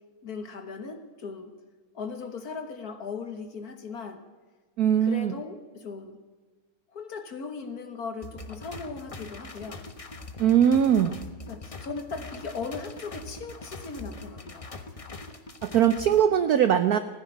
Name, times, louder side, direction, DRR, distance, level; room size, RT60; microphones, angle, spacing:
voice 1, 0.2-1.5 1.9-4.2 5.0-6.2 6.9-9.8 11.5-14.7, left 4 dB, 50° left, 8 dB, 1.7 m, -38 dB
voice 2, 4.8-5.3 10.4-11.2 15.6-17.0, right 9 dB, 70° right, 12 dB, 0.9 m, -21 dB
sound 1, 8.2-16.2, left 3 dB, 30° left, 0.6 m, -42 dB
15.5 x 10.0 x 9.2 m, 1.3 s
omnidirectional pair, 2.3 m